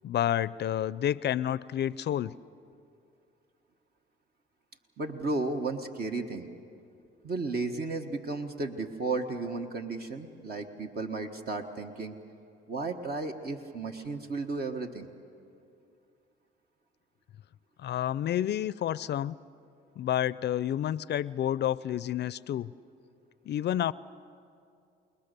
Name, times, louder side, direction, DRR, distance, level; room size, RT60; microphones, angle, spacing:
voice 1, 0.0-2.4 17.8-19.3 20.0-22.7 23.5-23.9, left 11 dB, 60° left, 18 dB, 0.5 m, -29 dB
voice 2, 5.0-6.5 7.2-12.2 12.7-15.1, right 3 dB, 50° right, 4 dB, 1.4 m, -34 dB
28.0 x 20.0 x 6.8 m, 2.5 s
cardioid pair, 90°, 20 cm